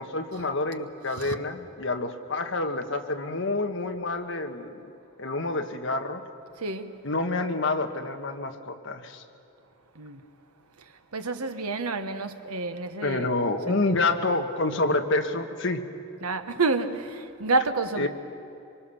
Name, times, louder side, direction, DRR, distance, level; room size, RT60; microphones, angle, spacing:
voice 1, 0.0-4.9 5.2-6.2 7.0-9.2 13.0-15.9 18.0-18.1, left 2 dB, 55° left, 1.5 m, -28 dB
voice 2, 11.1-13.3 13.7-14.0 16.2-16.9 17.4-18.1, right 3 dB, 90° right, 1.3 m, -28 dB
25.0 x 24.5 x 7.0 m
head